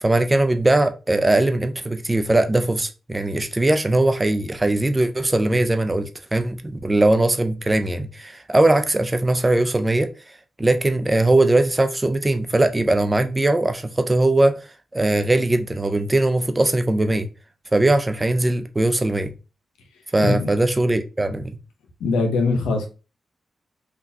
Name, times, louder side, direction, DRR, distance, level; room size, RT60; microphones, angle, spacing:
voice 1, 0.0-10.1 10.6-14.6 14.9-17.3 17.7-19.3 20.1-21.6, right 2 dB, 25° right, 0.5 m, -20 dB
voice 2, 22.0-22.9, left 3 dB, 85° left, 0.6 m, -21 dB
3.7 x 2.4 x 2.6 m
supercardioid pair, 40°, 0 cm